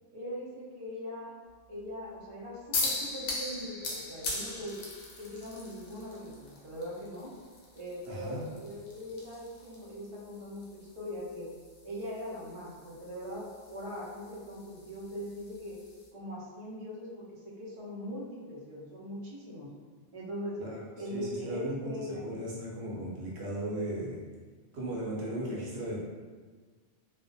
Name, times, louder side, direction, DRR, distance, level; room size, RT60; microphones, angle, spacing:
voice 1, 0.1-1.3 1.7-4.8 5.2-7.3 7.7-11.5 11.8-15.8 16.1-19.7 20.1-20.6 21.0-22.2, equal, 45° right, -6 dB, 0.4 m, -41 dB
sound 1, 2.7-16.1, left 3 dB, 70° left, 0.8 m, -41 dB
voice 2, 8.1-8.4 20.6-20.8 21.1-24.2 24.7-26.0, right 1 dB, 65° right, -5 dB, 0.9 m, -36 dB
2.3 x 2.0 x 2.6 m, 1.5 s
omnidirectional pair, 1.2 m